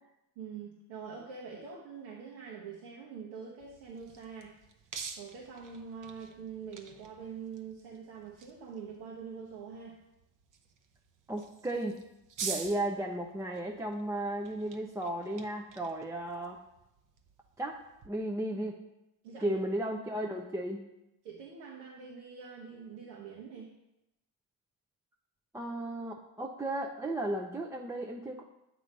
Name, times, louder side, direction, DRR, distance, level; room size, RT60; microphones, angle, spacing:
voice 1, 0.4-4.6 5.2-10.0 19.2-19.6 21.2-23.7, right 6 dB, 85° right, -4 dB, 1.2 m, -44 dB
sound 1, 3.6-18.1, right 6 dB, 40° right, 0.8 m, -47 dB
voice 2, 11.3-12.0 12.4-16.6 17.6-18.8 19.4-20.8 25.5-28.4, right 1 dB, 5° right, 1 dB, 0.4 m, -35 dB
7.9 x 3.1 x 5.2 m, 0.91 s
supercardioid pair, 75°, 47 cm